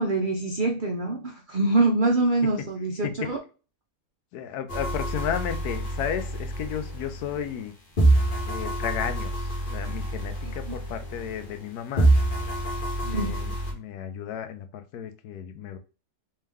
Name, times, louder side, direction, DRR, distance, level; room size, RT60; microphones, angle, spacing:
voice 1, 0.0-3.4 13.1-13.4, right 2 dB, 85° right, 2 dB, 0.4 m, -24 dB
voice 2, 4.3-7.7 8.5-12.1 13.0-15.8, left 9 dB, 75° left, 9 dB, 1.1 m, -33 dB
sound 1, 4.7-7.7 8.0-11.7 12.0-13.7, right 1 dB, 35° left, 1.2 m, -26 dB
3.3 x 3.3 x 3.4 m, 0.35 s
omnidirectional pair, 1.7 m